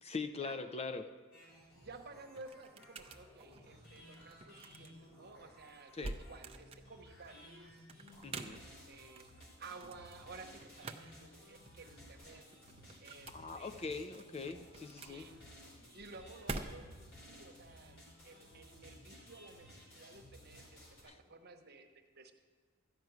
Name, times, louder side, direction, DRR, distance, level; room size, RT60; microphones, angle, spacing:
voice 1, 0.0-1.1 5.9-6.1 8.2-8.6 13.3-15.3 21.1-21.2, left 4 dB, 30° left, 9 dB, 0.5 m, -42 dB
sound 1, 1.3-21.0, equal, 65° left, 4.4 m, -57 dB
sound 2, 1.7-17.2, right 3 dB, 25° right, 0.6 m, -49 dB
voice 2, 1.7-7.7 8.3-12.5 13.0-14.2 14.9-15.4 15.9-21.9 22.1-22.3, right 3 dB, 45° right, 5 dB, 1.1 m, -54 dB
13.0 x 5.9 x 9.3 m, 1.5 s
head